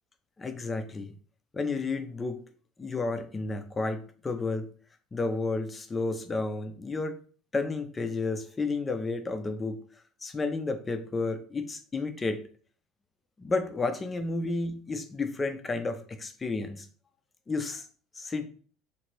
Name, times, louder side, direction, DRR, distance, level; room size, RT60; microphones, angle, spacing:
voice 1, 0.4-1.1 1.5-2.4 2.8-4.7 5.1-7.2 7.5-9.8 10.2-12.4 13.4-16.9 17.5-17.9 18.1-18.4, left 3 dB, 15° left, 8 dB, 0.3 m, -31 dB
2.9 x 2.5 x 3.1 m, 0.43 s
cardioid pair, 170°, 0 cm